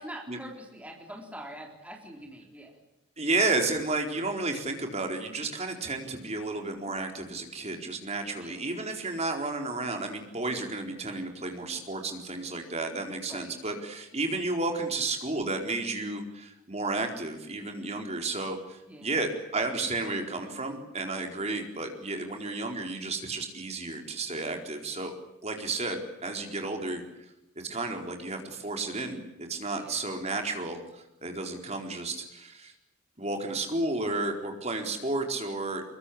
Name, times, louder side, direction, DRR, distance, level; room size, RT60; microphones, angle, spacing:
voice 1, 0.0-2.8 8.3-8.9 13.3-13.6 18.8-19.1 29.7-30.0, right 1 dB, 5° right, 1 dB, 3.8 m, -44 dB
voice 2, 3.2-25.1 25.4-27.0 27.7-32.7 33.2-35.8, right 2 dB, 30° right, 4 dB, 4.3 m, -32 dB
24.5 x 23.0 x 8.6 m, 0.91 s
head